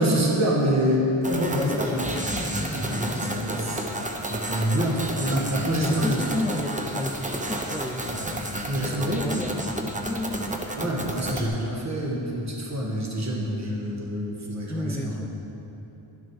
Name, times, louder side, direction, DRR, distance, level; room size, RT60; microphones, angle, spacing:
voice 1, 0.0-2.1 2.8-3.8 4.3-6.2 8.1-8.3 8.7-9.3 10.8-15.1, equal, 35° right, -2 dB, 1.4 m, -26 dB
sound 1, 1.2-11.5, right 1 dB, 15° right, 0.8 m, -31 dB
voice 2, 1.6-3.7 5.8-10.9 14.7-15.3, left 1 dB, 5° left, 6 dB, 0.3 m, -34 dB
11.5 x 6.0 x 4.7 m, 3.0 s
wide cardioid pair, 65°, 50 cm